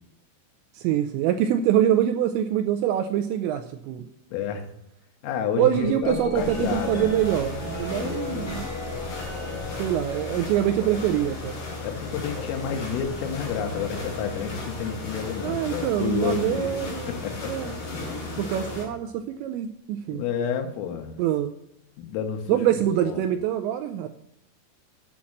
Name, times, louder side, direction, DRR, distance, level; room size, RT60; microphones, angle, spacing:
voice 1, 0.7-4.1 5.6-8.6 9.8-11.6 15.4-17.1 17.5-17.8 18.4-20.2 21.2-21.6 22.5-24.1, right 11 dB, 85° right, 8 dB, 2.6 m, -25 dB
voice 2, 4.3-4.7 5.2-7.2 7.9-8.5 11.8-16.7 17.0-17.6 20.1-21.2 22.0-22.5 23.0-23.3, left 7 dB, 90° left, 5 dB, 3.9 m, -30 dB
sound 1, 5.7-15.8 16.7-17.1 17.9-18.9 20.7-20.8, equal, 15° left, 2.8 m, -40 dB
sound 2, 6.3-18.9, left 3 dB, 50° left, 5.5 m, -35 dB
8.6 x 6.4 x 7.1 m, 0.81 s
omnidirectional pair, 5.7 m